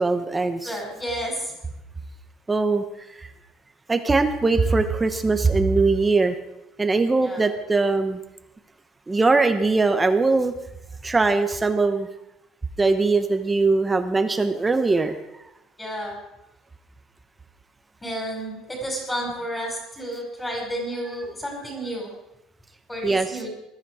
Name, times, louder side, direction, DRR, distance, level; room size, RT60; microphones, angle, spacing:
voice 1, 0.0-0.8 2.5-2.8 3.1-3.3 3.9-6.4 6.8-8.2 9.1-10.5 11.0-12.1 12.8-15.2 23.0-23.4, right 3 dB, 10° right, 8 dB, 0.9 m, -21 dB
voice 2, 0.6-1.5 7.2-7.5 15.8-16.2 18.0-22.1 22.9-23.5, equal, 10° left, -1 dB, 5.4 m, -31 dB
20.5 x 13.0 x 4.9 m, 0.89 s
cardioid pair, 170°, 0 cm